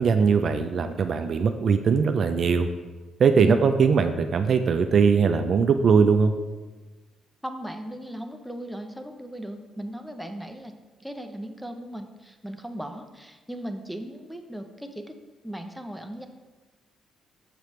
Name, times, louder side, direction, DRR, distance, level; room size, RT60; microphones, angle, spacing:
voice 1, 0.0-2.7 3.2-6.3, right 5 dB, 55° right, 8 dB, 0.3 m, -20 dB
voice 2, 7.4-10.7 11.0-15.0 15.4-16.3, right 1 dB, ahead, 5 dB, 0.6 m, -37 dB
6.7 x 5.0 x 3.1 m, 1.2 s
cardioid pair, 90°, 0 cm